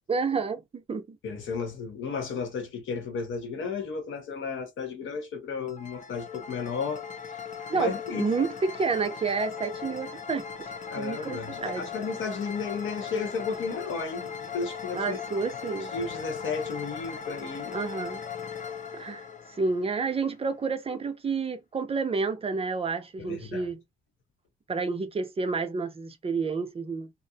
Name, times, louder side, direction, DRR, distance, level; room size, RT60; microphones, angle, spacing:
voice 1, 0.1-0.6 0.9-1.2 7.7-11.9 14.9-15.9 17.7-18.2 18.9-23.8 24.7-27.1, right 4 dB, 30° right, 0.6 m, -30 dB
voice 2, 1.2-7.0 7.7-8.3 10.9-15.2 15.9-17.8 23.2-23.7, left 5 dB, 75° left, 1.0 m, -33 dB
sound 1, 5.6-20.5, left 6 dB, 40° left, 0.6 m, -39 dB
2.5 x 2.0 x 2.7 m
cardioid pair, 90°, 20 cm